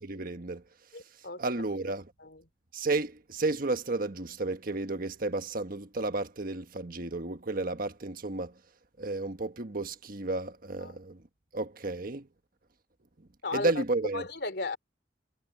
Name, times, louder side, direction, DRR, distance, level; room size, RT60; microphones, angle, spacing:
voice 1, 0.0-0.6 1.4-2.1 2.7-8.5 9.0-11.2 11.5-12.3 13.5-14.2, right 2 dB, 50° right, 1.4 m, -32 dB
voice 2, 0.9-1.4 2.2-2.4 10.8-11.0 13.4-13.8 14.1-14.8, left 3 dB, 65° left, 3.4 m, -35 dB
head